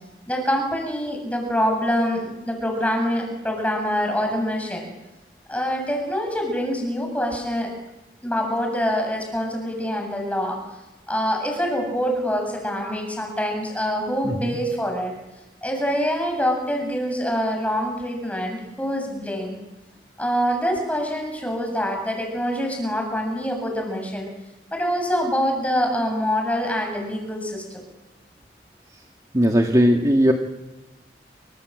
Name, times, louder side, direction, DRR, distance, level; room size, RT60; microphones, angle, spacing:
voice 1, 0.3-4.9 5.5-7.7 8.2-10.6 11.1-15.1 15.6-19.5 20.2-24.3 24.7-27.6, equal, 10° left, 3 dB, 7.5 m, -25 dB
voice 2, 14.2-14.6 29.3-30.3, equal, 20° right, 2 dB, 1.9 m, -18 dB
29.0 x 26.0 x 7.8 m, 1.0 s
head